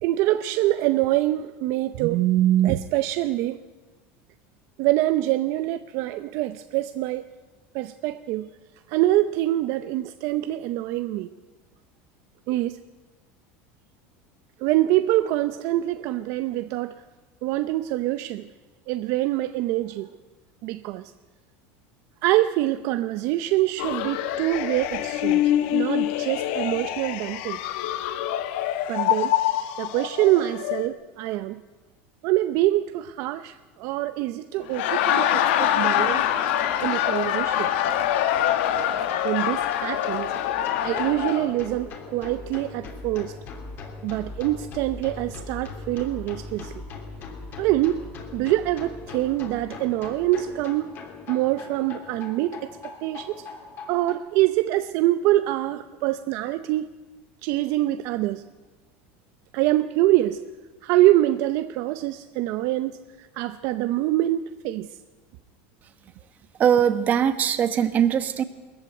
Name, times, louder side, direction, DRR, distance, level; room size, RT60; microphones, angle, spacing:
voice 1, 0.0-3.6 4.8-7.3 7.7-8.5 8.9-11.3 12.5-12.8 14.6-16.9 17.4-18.5 18.9-20.1 20.6-21.0 22.2-27.6 28.9-29.3 29.8-31.6 32.2-36.2 36.8-37.7 39.2-40.3 40.8-43.3 44.0-46.7 47.6-48.1 48.3-51.0 51.3-52.7 53.0-53.3 53.9-56.9 57.4-58.4 59.5-60.4 60.8-62.9 63.2-64.9, right 15 dB, 50° right, 0.6 m, -24 dB
sound 1, 23.8-30.9, left 13 dB, 70° left, 1.4 m, -26 dB
Laughter, 34.6-41.5, left 11 dB, 85° left, 1.7 m, -24 dB
sound 2, 35.9-54.1, left 4 dB, 35° left, 3.1 m, -40 dB
voice 2, 66.6-68.4, right 8 dB, 30° right, 1.2 m, -21 dB
20.5 x 14.5 x 9.4 m
cardioid pair, 165°, 6 cm